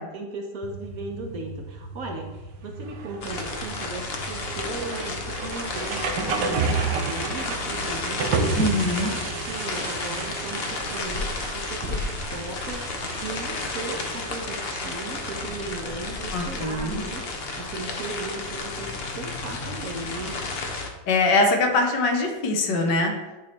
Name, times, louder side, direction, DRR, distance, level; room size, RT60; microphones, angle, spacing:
voice 1, 0.0-20.4, right 3 dB, 60° right, 2 dB, 1.1 m, -37 dB
sound 1, 0.6-18.6, right 4 dB, 85° right, 1.4 m, -33 dB
sound 2, 3.2-20.9, left 3 dB, 55° left, 0.7 m, -32 dB
voice 2, 8.6-9.1 16.3-17.0 21.1-23.1, left 2 dB, 75° left, 3 dB, 1.6 m, -22 dB
9.7 x 3.2 x 4.2 m, 1.1 s
omnidirectional pair, 1.9 m